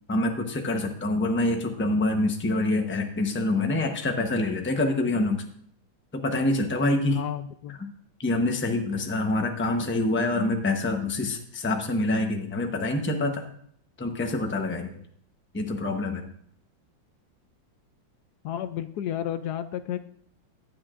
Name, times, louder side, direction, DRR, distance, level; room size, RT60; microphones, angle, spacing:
voice 1, 0.1-5.4 6.1-7.2 7.8-7.9 8.2-13.5 14.0-14.9 15.5-16.3, left 2 dB, 15° left, 4 dB, 0.5 m, -26 dB
voice 2, 7.1-7.8 18.4-20.0, left 10 dB, 70° left, 11 dB, 1.0 m, -31 dB
15.5 x 10.5 x 2.5 m, 0.64 s
omnidirectional pair, 2.0 m